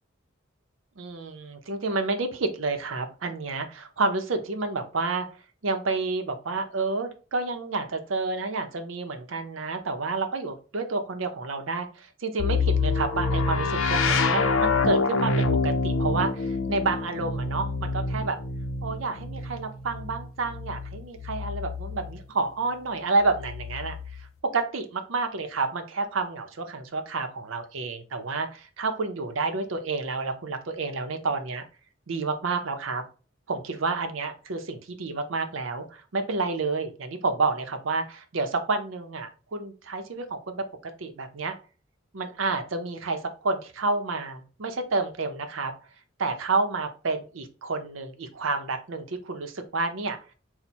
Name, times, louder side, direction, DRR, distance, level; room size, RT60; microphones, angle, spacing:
voice 1, 1.0-5.3 5.6-18.4 18.8-24.3 24.5-31.6 32.1-33.0 33.5-40.6 41.0-41.5 42.1-45.7 46.2-50.3, right 3 dB, 75° right, 7 dB, 0.6 m, -29 dB
sound 1, 12.4-22.2 23.2-24.3, left 3 dB, 90° left, 0.5 m, -27 dB
4.1 x 2.1 x 4.3 m, 0.35 s
head